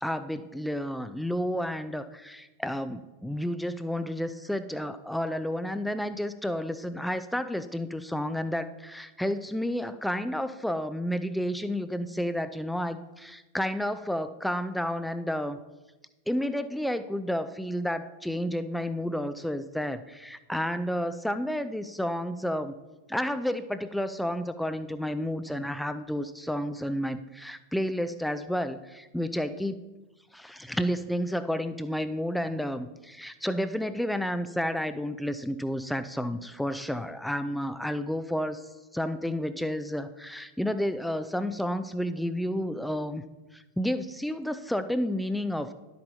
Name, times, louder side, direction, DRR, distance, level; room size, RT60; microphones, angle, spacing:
voice 1, 0.0-15.6 16.3-22.7 23.1-29.8 30.3-38.6 38.9-43.2 43.5-45.7, equal, ahead, 12 dB, 0.4 m, -31 dB
11.5 x 8.3 x 2.8 m, 1.1 s
figure-of-eight pair, 90°, 0 cm